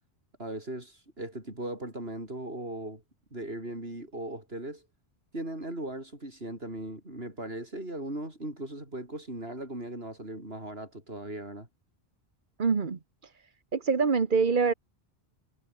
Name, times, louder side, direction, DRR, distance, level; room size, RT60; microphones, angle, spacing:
voice 1, 0.4-3.0 3.3-4.8 5.3-11.7, right 1 dB, 65° right, 6.9 m, -38 dB
voice 2, 12.6-13.0 13.7-14.7, right 5 dB, 50° right, 1.5 m, -24 dB
omnidirectional pair, 1.1 m